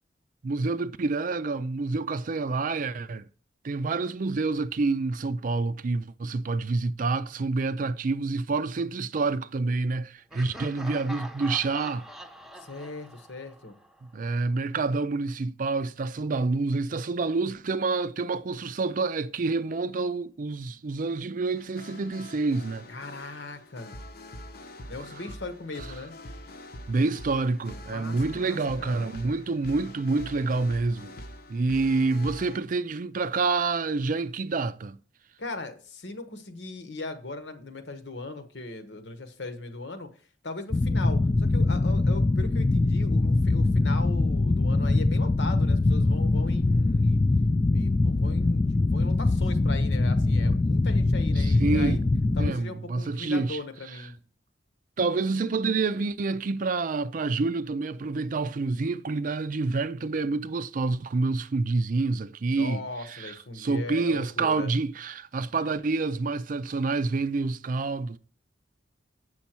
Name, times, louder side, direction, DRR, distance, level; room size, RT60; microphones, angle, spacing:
voice 1, 0.4-3.2 3.6-12.1 14.1-22.8 26.9-31.2 31.5-35.0 51.4-52.0 52.4-53.6 55.0-62.8 63.1-68.2, right 3 dB, 50° right, 0.4 m, -28 dB
Laughter, 10.3-14.2, right 1 dB, ahead, 0.8 m, -44 dB
voice 2, 12.6-13.8 22.9-24.0 24.9-26.1 27.9-29.1 35.4-40.1 40.4-47.2 47.7-52.0 52.4-54.1 62.5-64.7, left 2 dB, 80° left, 1.2 m, -39 dB
sound 1, 21.5-32.6, left 1 dB, 60° left, 0.9 m, -44 dB
sound 2, 40.7-52.5, left 2 dB, 20° left, 0.3 m, -23 dB
8.3 x 6.3 x 4.4 m
head